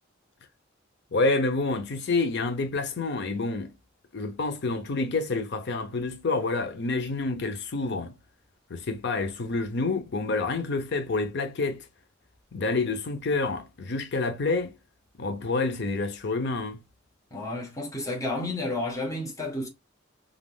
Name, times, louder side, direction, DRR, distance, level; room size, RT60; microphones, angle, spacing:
voice 1, 1.1-3.7 4.1-8.1 8.7-11.8 12.5-14.7 15.2-16.8, left 3 dB, 60° left, 0.6 m, -28 dB
voice 2, 17.3-19.7, left 2 dB, 15° left, 0.9 m, -31 dB
3.5 x 2.4 x 2.2 m
head